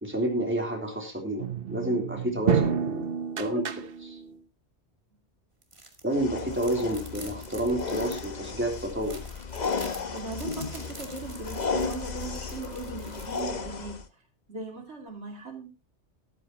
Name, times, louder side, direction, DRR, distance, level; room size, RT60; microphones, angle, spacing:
voice 1, 0.0-3.1 3.4-4.2 6.0-9.2, right 1 dB, 10° right, 1 dB, 3.3 m, -30 dB
sound 1, 1.4-4.4, right 7 dB, 55° right, 1.0 m, -29 dB
sound 2, 5.6-6.0 6.4-13.5, right 2 dB, 25° right, 2.3 m, -47 dB
sound 3, 6.1-14.1, left 5 dB, 40° left, 1.0 m, -34 dB
voice 2, 10.1-14.0 14.5-15.7, right 4 dB, 70° right, 2 dB, 2.8 m, -39 dB
13.5 x 12.5 x 2.9 m, 0.26 s
omnidirectional pair, 1.2 m